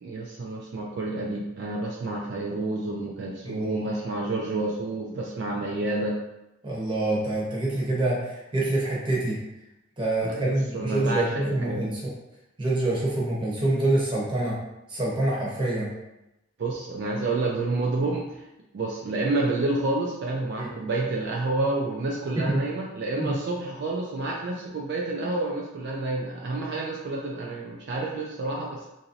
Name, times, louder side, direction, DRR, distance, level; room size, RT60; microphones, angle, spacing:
voice 1, 0.0-6.2 10.2-11.9 16.6-18.5 18.7-28.9, right 2 dB, 60° right, -2 dB, 0.4 m, -29 dB
voice 2, 3.4-3.9 6.6-9.4 10.0-12.1 12.6-14.6 14.9-15.9 20.6-20.7 22.4-22.6 23.2-23.4, right 2 dB, 25° right, -5 dB, 0.8 m, -26 dB
2.9 x 2.6 x 2.6 m, 0.92 s
head